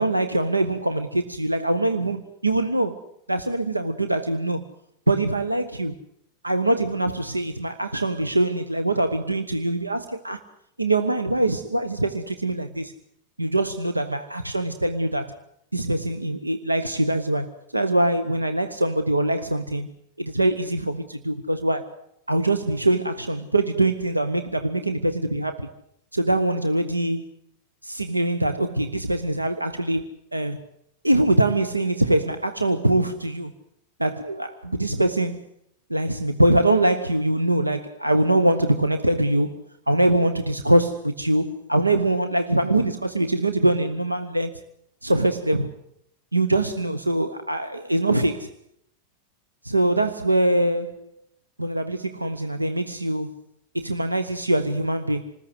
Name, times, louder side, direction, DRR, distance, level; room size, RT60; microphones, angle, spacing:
voice 1, 0.0-3.0 3.3-4.6 5.1-6.0 6.4-10.4 10.8-12.9 13.4-15.4 15.7-19.9 20.2-21.9 22.3-25.7 26.1-27.2 27.8-30.1 30.3-30.6 31.0-33.5 34.0-35.4 35.9-39.6 39.9-44.6 45.0-45.7 46.3-48.5 49.6-51.0 51.6-53.3 53.7-55.3, right 1 dB, 85° right, 1.0 m, -23 dB
27.5 x 20.0 x 8.1 m
figure-of-eight pair, 90°, 0 cm